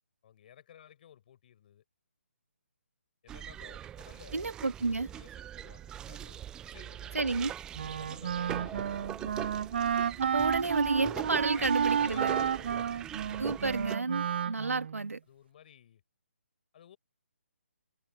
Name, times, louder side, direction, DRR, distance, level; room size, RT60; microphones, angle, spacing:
voice 1, 0.2-1.8 3.2-4.5 4.9-7.3 7.8-9.4 11.4-12.9 15.3-16.0 16.7-17.0, left 10 dB, 40° left, 5.0 m, -55 dB
sound 1, 3.3-14.0, right 10 dB, 10° right, 0.5 m, -42 dB
voice 2, 4.3-5.1 7.1-7.5 10.2-12.3 13.4-15.2, right 3 dB, 85° right, 1.7 m, -31 dB
Wind instrument woodwind instrument, 7.7-15.1, right 8 dB, 45° right, 0.7 m, -31 dB
figure-of-eight pair, 150°, 7 cm